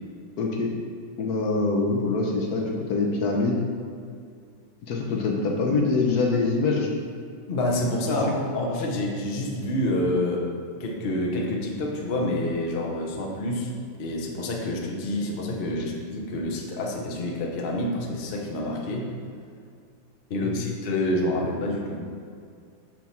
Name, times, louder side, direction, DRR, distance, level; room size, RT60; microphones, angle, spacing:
voice 1, 0.4-0.7 1.2-3.6 4.8-6.9 8.0-8.2 15.8-15.9 20.4-20.6, left 3 dB, 60° left, 0 dB, 1.1 m, -24 dB
voice 2, 7.5-10.5 10.8-13.7 14.0-19.1 20.3-22.1, left 1 dB, 75° left, -1 dB, 0.5 m, -28 dB
6.3 x 3.5 x 5.8 m, 2.3 s
omnidirectional pair, 2.3 m